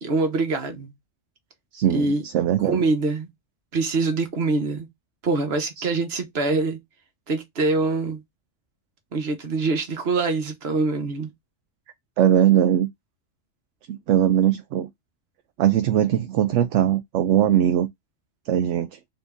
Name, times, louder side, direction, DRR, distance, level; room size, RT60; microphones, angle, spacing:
voice 1, 0.0-0.9 1.9-2.2 2.6-3.3 3.7-4.9 5.2-6.8 7.3-8.2 9.1-11.3, right 3 dB, 55° right, 1.3 m, -24 dB
voice 2, 1.7-2.8 5.8-5.9 12.2-12.9 13.9-14.9 15.6-17.9 18.5-19.0, right 10 dB, 75° right, 0.9 m, -20 dB
3.9 x 2.7 x 3.4 m
omnidirectional pair, 1.3 m